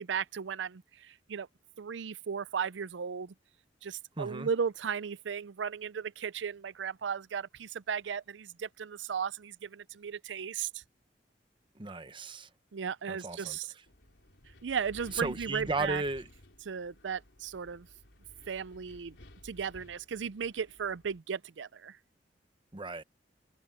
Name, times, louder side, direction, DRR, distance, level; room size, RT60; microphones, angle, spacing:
voice 1, 0.0-1.5 1.8-3.3 3.8-10.8 12.7-13.7 14.6-16.0 16.7-17.9 18.5-19.2 19.4-22.0, right 6 dB, 90° right, 0.5 m, -36 dB
voice 2, 4.2-4.5 11.8-12.5 13.1-13.6 15.1-16.3 22.7-23.0, right 3 dB, 30° right, 0.9 m, -35 dB
Wind, 13.9-21.2, left 1 dB, 75° left, 4.0 m, -55 dB
head